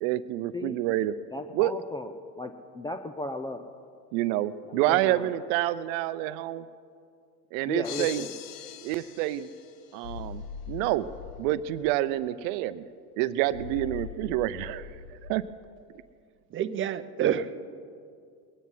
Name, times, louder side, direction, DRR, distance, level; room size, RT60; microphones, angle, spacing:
voice 1, 0.0-1.1 1.5-1.7 4.1-6.6 7.5-8.3 8.8-9.5 9.9-11.1 11.4-12.9 13.2-15.0 15.3-15.4, right 14 dB, 60° right, 14 dB, 0.7 m, -28 dB
voice 2, 1.3-3.6 4.7-5.3 7.6-8.4, left 2 dB, 10° left, 7 dB, 0.4 m, -36 dB
sound 1, 7.8-10.1, left 12 dB, 50° left, 0.8 m, -42 dB
sound 2, 10.0-11.9 13.5-15.5, left 7 dB, 75° left, 1.2 m, -41 dB
voice 3, 16.5-17.6, right 9 dB, 25° right, 12 dB, 0.7 m, -28 dB
21.0 x 9.5 x 5.6 m, 2.3 s
hypercardioid pair, 100°, 47 cm